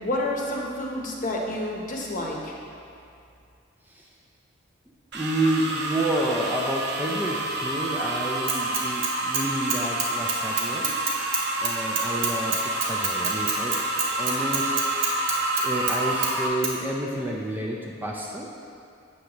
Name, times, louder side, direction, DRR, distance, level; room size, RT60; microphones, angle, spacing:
voice 1, 0.0-2.5, left 1 dB, 40° left, -1 dB, 0.9 m, -29 dB
voice 2, 5.1-11.0 11.6-13.8 14.2-14.7 15.6-18.5, right 1 dB, 10° right, -2 dB, 0.4 m, -29 dB
sound 1, 5.1-16.5, right 2 dB, 55° right, 0.8 m, -28 dB
Bicycle / Mechanisms, 8.5-9.4 9.7-16.0 16.2-16.3 16.6-16.7, right 6 dB, 80° right, 1.0 m, -27 dB
8.0 x 6.4 x 2.9 m, 2.5 s
head